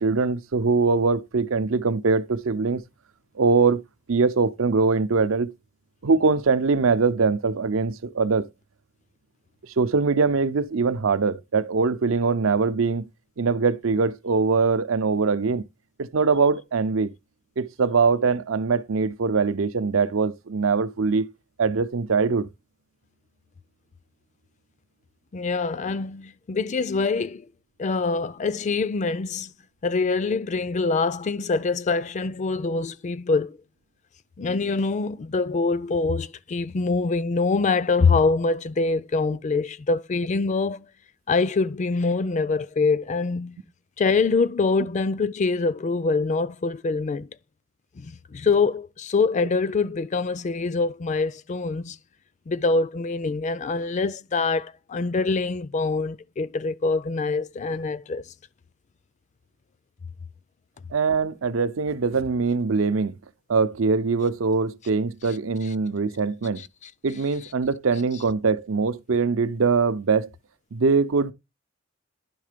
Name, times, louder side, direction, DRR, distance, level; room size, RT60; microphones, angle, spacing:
voice 1, 0.0-2.8 3.4-3.8 4.1-5.5 6.0-8.5 9.8-13.0 13.4-15.6 16.0-17.1 17.6-21.3 21.6-22.5 60.9-63.1 63.5-66.6 67.0-70.3 70.7-71.3, right 4 dB, 80° right, 0.6 m, -22 dB
voice 2, 25.3-27.5 27.8-29.5 29.8-33.6 34.4-40.8 41.3-43.6 44.0-47.3 48.0-52.0 52.5-58.2 66.6-66.7, left 4 dB, 35° left, 0.4 m, -24 dB
10.5 x 3.7 x 5.0 m
head